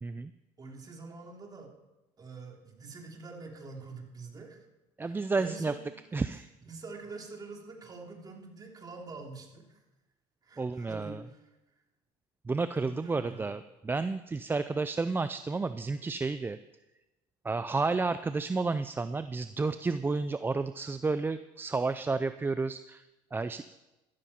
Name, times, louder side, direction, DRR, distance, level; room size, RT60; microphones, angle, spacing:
voice 1, 0.0-0.3 5.0-5.7 6.1-6.5 10.6-11.2 12.5-16.6 17.4-23.0 23.3-23.7, right 3 dB, 15° right, 12 dB, 0.5 m, -31 dB
voice 2, 0.6-1.7 2.2-4.7 5.0-5.8 6.7-9.6 10.4-11.4 12.8-13.6, right 3 dB, 35° right, 1 dB, 3.3 m, -45 dB
14.0 x 12.5 x 4.4 m, 1.0 s
supercardioid pair, 85°, 12 cm